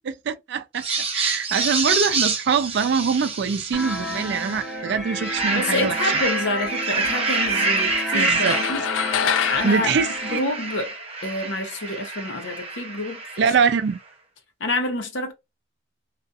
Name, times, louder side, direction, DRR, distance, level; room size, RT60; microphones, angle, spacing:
voice 1, 0.3-0.9 1.1-6.1 8.1-8.6 9.6-10.5 13.4-14.0, right 6 dB, 60° right, 0.4 m, -23 dB
sound 1, 0.7-4.6 5.0-13.7, right 3 dB, 30° right, 0.7 m, -27 dB
sound 2, 3.7-10.4, equal, ahead, 1.0 m, -32 dB
voice 2, 5.5-8.8 9.2-9.9 10.3-10.9 11.2-13.2 14.6-15.3, left 2 dB, 70° left, 0.8 m, -27 dB
sound 3, 8.4-11.0, left 9 dB, 85° left, 0.4 m, -26 dB
2.4 x 2.3 x 2.5 m
head